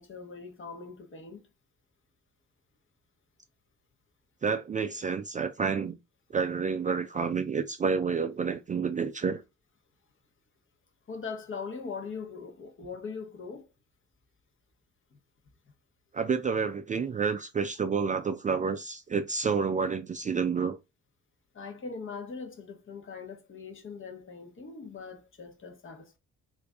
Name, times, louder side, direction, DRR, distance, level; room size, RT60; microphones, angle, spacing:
voice 1, 0.0-1.5 11.1-13.7 15.1-15.2 21.5-26.2, left 5 dB, 40° left, 1.0 m, -41 dB
voice 2, 4.4-6.0 6.3-9.4 16.1-20.8, right 5 dB, 25° right, 0.3 m, -29 dB
3.2 x 2.6 x 3.4 m
cardioid pair, 90°, 30 cm